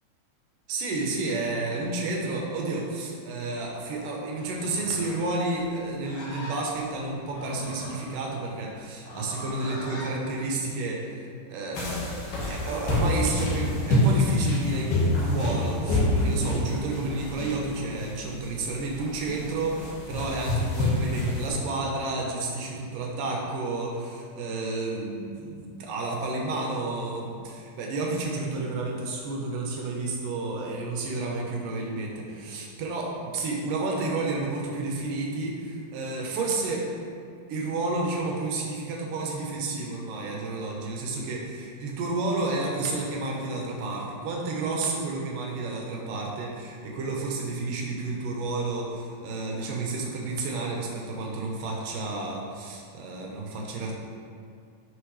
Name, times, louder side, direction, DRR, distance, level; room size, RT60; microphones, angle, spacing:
voice 1, 0.7-36.9 37.5-54.0, right 3 dB, 75° right, -1 dB, 2.0 m, -31 dB
Livestock farm animals working animals, 4.5-10.1, equal, 80° left, 1.5 m, -41 dB
sound 1, 11.7-21.5, left 1 dB, 60° left, 2.6 m, -27 dB
13.5 x 5.3 x 3.3 m, 2.3 s
omnidirectional pair, 5.2 m